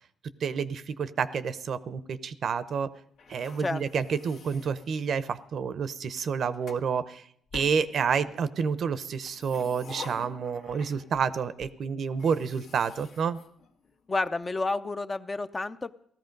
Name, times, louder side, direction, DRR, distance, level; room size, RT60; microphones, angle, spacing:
voice 1, 0.4-2.9 3.3-7.2 7.5-13.4, right 6 dB, 60° right, 14 dB, 0.7 m, -29 dB
sound 1, 3.2-5.5 6.2-6.9 7.5-8.4 9.2-11.3 11.6-11.7 12.1-14.2, left 5 dB, 70° left, 1.7 m, -48 dB
voice 2, 14.1-15.9, left 3 dB, 25° left, 10 dB, 0.6 m, -30 dB
16.5 x 13.5 x 5.3 m, 0.66 s
cardioid pair, 90°, 0 cm